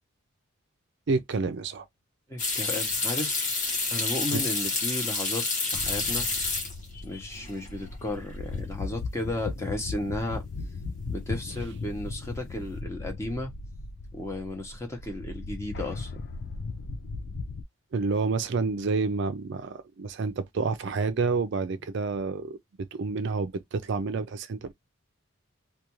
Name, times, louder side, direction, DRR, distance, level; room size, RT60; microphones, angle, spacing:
voice 1, 1.1-1.9 4.3-4.4 17.9-22.6 22.9-24.7, right 4 dB, 55° right, 0.4 m, -29 dB
voice 2, 2.3-3.4 3.9-6.3 6.9-10.4 11.1-13.5 14.1-16.2, left 1 dB, 15° left, 0.7 m, -34 dB
sound 1, 2.4-7.1 7.3-8.0 8.3-8.4 11.1-11.5 11.8-12.3, left 3 dB, 35° left, 1.0 m, -29 dB
sound 2, 5.7-17.6, left 3 dB, 50° left, 0.4 m, -37 dB
2.4 x 2.3 x 2.9 m
head